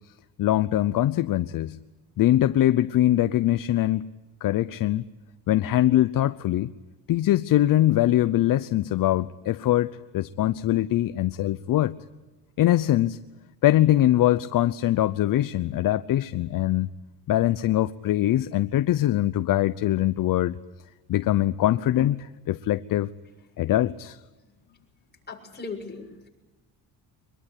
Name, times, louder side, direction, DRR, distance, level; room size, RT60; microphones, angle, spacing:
voice 1, 0.4-1.8 2.2-4.1 4.4-5.0 5.5-6.7 7.1-11.9 12.6-13.2 13.6-16.9 17.3-20.6 21.1-23.1 23.6-24.2, left 13 dB, 55° left, 13 dB, 0.8 m, -22 dB
voice 2, 25.3-26.3, left 4 dB, 25° left, 1 dB, 6.7 m, -38 dB
24.5 x 22.0 x 10.0 m, 1.1 s
cardioid pair, 115°, 39 cm